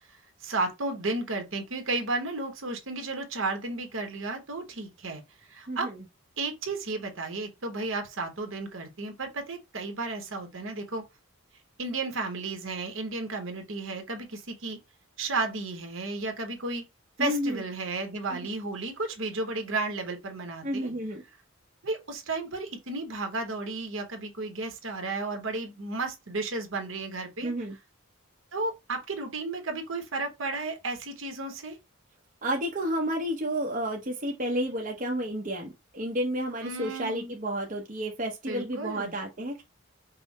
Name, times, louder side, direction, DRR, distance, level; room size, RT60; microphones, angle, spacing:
voice 1, 0.1-5.2 5.5-5.9 6.4-11.0 11.8-14.8 15.2-16.8 17.2-20.9 21.8-27.5 28.5-31.8 36.6-37.3 38.5-39.2, right 3 dB, 65° right, 1.1 m, -33 dB
voice 2, 17.2-17.6 18.3-18.4 20.6-21.2 27.4-27.8 32.4-39.6, equal, 40° right, 0.8 m, -31 dB
5.4 x 2.1 x 4.1 m
head